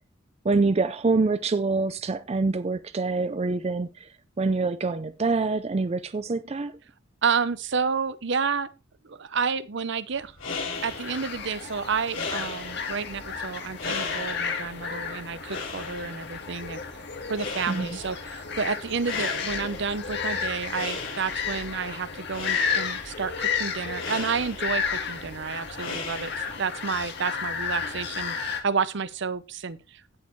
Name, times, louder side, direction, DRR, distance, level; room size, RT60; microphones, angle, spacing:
voice 1, 0.4-4.1 4.4-6.8 17.7-18.0, right 3 dB, 30° right, 0.4 m, -25 dB
voice 2, 7.2-8.7 9.0-10.3 10.8-16.8 17.3-30.2, right 5 dB, 60° right, 0.7 m, -30 dB
sound 1, 10.2-26.8, left 4 dB, 80° left, 5.2 m, -38 dB
sound 2, 10.7-28.6, left 6 dB, 55° left, 2.0 m, -33 dB
16.5 x 6.5 x 3.2 m
head